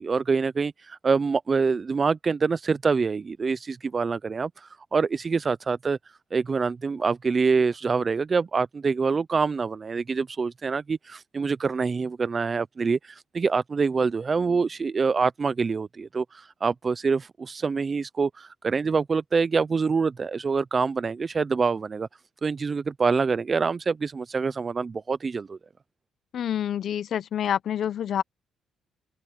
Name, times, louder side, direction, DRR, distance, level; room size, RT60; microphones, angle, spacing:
voice 1, 0.0-6.0 6.3-22.1 22.4-25.6, right 5 dB, 35° right, 0.5 m, -25 dB
voice 2, 26.3-28.2, left 9 dB, 65° left, 0.8 m, -27 dB
open air
cardioid pair, 90°, 0 cm